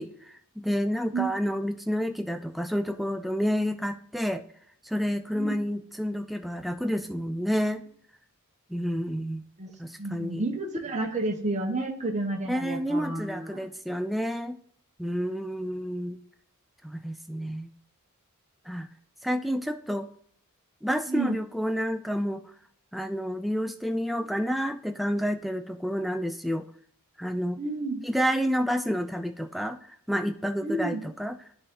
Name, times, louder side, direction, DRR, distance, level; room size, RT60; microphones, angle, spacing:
voice 1, 0.0-4.4 4.8-7.8 8.7-9.4 9.8-10.4 12.5-14.6 15.0-16.2 16.8-17.7 18.7-18.9 19.2-20.1 20.8-22.5 22.9-26.6 27.2-27.6 28.0-29.8 30.1-31.4, equal, ahead, 7 dB, 0.3 m, -29 dB
voice 2, 10.0-13.7 21.1-21.4 24.2-24.3 27.6-28.0 30.6-31.0, right 2 dB, 30° right, 1 dB, 1.1 m, -31 dB
10.5 x 3.8 x 3.7 m, 0.65 s
head